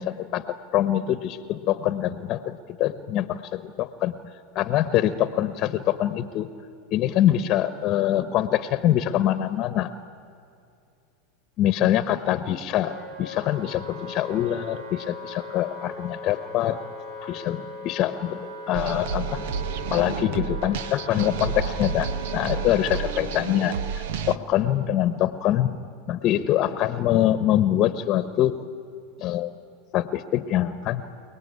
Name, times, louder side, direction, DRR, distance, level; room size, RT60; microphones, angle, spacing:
voice 1, 0.0-4.2 4.5-6.5 6.9-9.9 11.6-16.8 17.2-19.4 19.9-28.6 29.2-29.5 29.9-31.0, left 12 dB, 45° left, 12 dB, 1.1 m, -24 dB
Wind instrument woodwind instrument, 12.8-23.1, left 1 dB, 50° right, 4.8 m, -39 dB
sound 1, 18.7-24.4, right 6 dB, 75° right, 1.1 m, -30 dB
29.0 x 19.0 x 9.7 m, 2.5 s
supercardioid pair, 115°, 0 cm